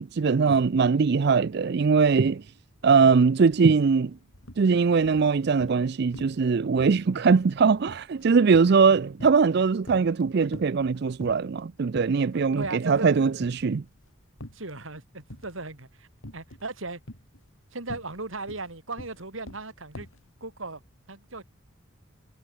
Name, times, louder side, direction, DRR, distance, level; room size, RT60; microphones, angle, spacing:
voice 1, 0.0-2.4 2.8-4.1 4.6-13.8, right 5 dB, 50° right, 0.4 m, -21 dB
sound 1, 3.4-3.6 3.9-4.7 5.0-5.9 6.1-6.5 6.8-9.6 9.8-10.8 11.2-11.6 12.0-12.1 12.6-13.1 13.4-14.8 15.3-15.7 16.2-16.7 17.0-20.3, left 1 dB, 90° left, 4.6 m, -45 dB
voice 2, 12.5-13.1 14.5-16.1 16.3-17.0 17.7-20.1 20.4-20.8 21.1-21.4, right 3 dB, 70° right, 3.4 m, -37 dB
head